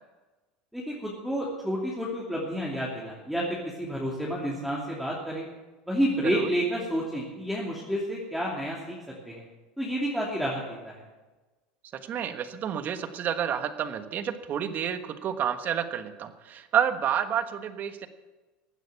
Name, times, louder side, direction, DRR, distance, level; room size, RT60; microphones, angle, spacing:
voice 1, 0.7-5.5 5.9-9.0 9.3-9.4 9.8-11.0, equal, ahead, -4 dB, 2.8 m, -30 dB
voice 2, 12.0-18.1, right 9 dB, 40° right, 9 dB, 1.3 m, -29 dB
15.5 x 9.0 x 7.0 m, 1.2 s
supercardioid pair, 100°, 4 cm